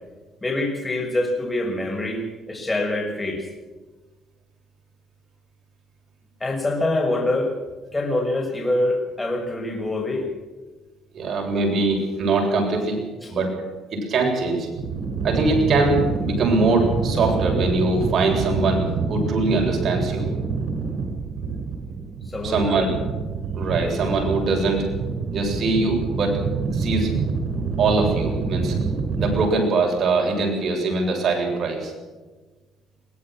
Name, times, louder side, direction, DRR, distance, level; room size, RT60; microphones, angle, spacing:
voice 1, 0.4-3.5 6.4-7.5 7.9-10.3 13.2-13.3 22.2-23.0, left 2 dB, 15° left, 2 dB, 6.7 m, -25 dB
voice 2, 11.1-13.0 13.3-13.5 13.9-14.7 15.2-20.3 22.4-22.9 23.5-24.9 25.3-26.4 26.7-27.1 27.8-28.8 29.2-31.9, right 3 dB, 45° right, 1 dB, 8.0 m, -22 dB
sound 1, 14.8-29.5, right 5 dB, 85° right, 6.9 m, -26 dB
23.5 x 18.0 x 6.4 m, 1.3 s
cardioid pair, 125°, 0 cm